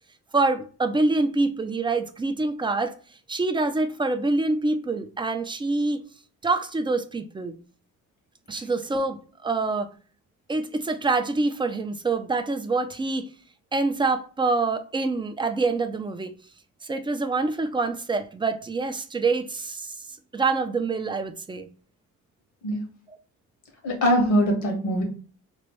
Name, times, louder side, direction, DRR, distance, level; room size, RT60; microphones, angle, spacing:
voice 1, 0.3-3.0 3.3-6.0 6.4-7.5 8.5-9.9 10.5-13.3 13.7-16.3 16.8-19.9 20.3-21.7, right 3 dB, 15° right, 0.4 m, -26 dB
voice 2, 23.8-25.0, equal, 75° left, 1.4 m, -22 dB
3.1 x 2.6 x 3.0 m
cardioid pair, 90°, 30 cm